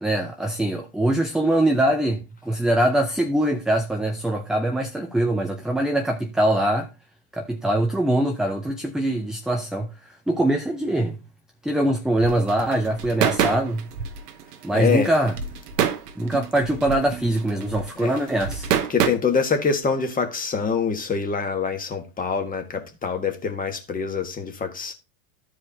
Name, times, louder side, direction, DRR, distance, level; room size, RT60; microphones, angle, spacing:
voice 1, 0.0-6.9 7.3-9.9 10.3-11.2 11.6-13.8 14.6-15.3 16.2-18.7, right 1 dB, ahead, 0.4 m, -23 dB
sound 1, 12.2-19.1, right 8 dB, 85° right, 1.1 m, -26 dB
voice 2, 14.7-15.1 18.0-18.1 18.9-24.9, left 5 dB, 20° left, 1.5 m, -25 dB
13.5 x 4.9 x 2.8 m
hypercardioid pair, 105°, 46 cm